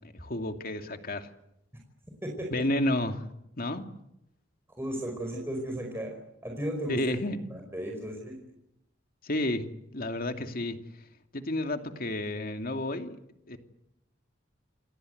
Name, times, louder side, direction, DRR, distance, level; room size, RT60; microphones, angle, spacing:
voice 1, 0.2-1.3 2.5-3.2 3.6-3.8 6.9-7.4 9.2-9.7 9.9-10.8 11.3-13.2 13.5-13.6, left 1 dB, 50° left, 6 dB, 2.7 m, -31 dB
voice 2, 2.2-2.6 4.8-6.2 6.4-7.1 7.5-8.4, equal, 15° right, 1 dB, 5.2 m, -35 dB
29.0 x 24.0 x 8.1 m, 0.83 s
head